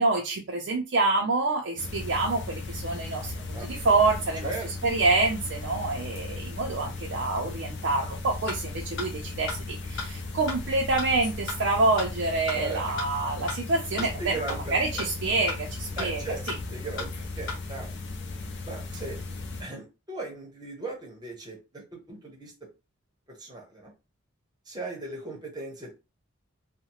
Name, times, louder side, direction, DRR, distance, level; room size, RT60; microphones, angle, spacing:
voice 1, 0.0-4.5 4.8-14.3 14.7-16.6, right 3 dB, 55° right, 0 dB, 0.4 m, -27 dB
sound 1, 1.8-19.6, left 3 dB, 55° left, 0.5 m, -37 dB
voice 2, 3.3-3.9 4.4-4.7 12.5-12.9 14.0-15.1 16.0-16.4 16.7-18.0 18.6-19.2 19.6-22.7 23.3-23.9 24.7-25.9, right 2 dB, 20° right, -1 dB, 0.8 m, -38 dB
sound 2, 8.5-8.6 9.0-9.1 9.5-9.6 10.0-10.1 10.5-10.6 11.0-11.1 11.5-11.6 12.0-12.1 12.5-12.6 13.0-13.1 13.5-13.6 14.0-14.1 14.5-14.6 15.0-15.1 15.5-15.6 16.0-16.1 16.5-16.6 17.0-17.1 17.5-17.6, left 4 dB, 70° left, 1.0 m, -33 dB
2.8 x 2.0 x 2.8 m, 0.28 s
head